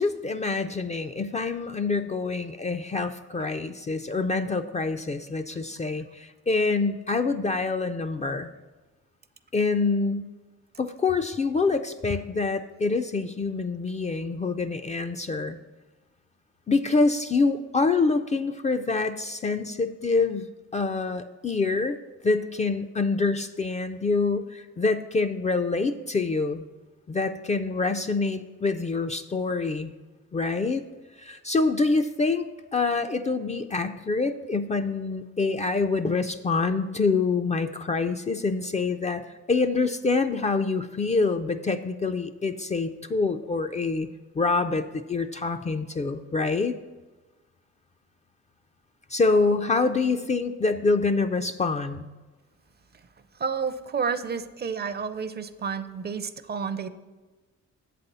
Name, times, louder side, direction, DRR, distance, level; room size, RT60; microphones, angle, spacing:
voice 1, 0.0-8.5 9.5-10.3 10.8-15.6 16.7-20.5 20.7-22.0 22.2-26.6 27.1-29.9 30.3-30.8 31.2-32.5 32.7-44.1 44.4-46.7 49.1-52.1, left 3 dB, 25° left, 8 dB, 0.3 m, -26 dB
voice 2, 53.4-56.9, right 6 dB, 35° right, 12 dB, 0.5 m, -30 dB
7.7 x 4.2 x 6.7 m, 1.2 s
cardioid pair, 80°, 29 cm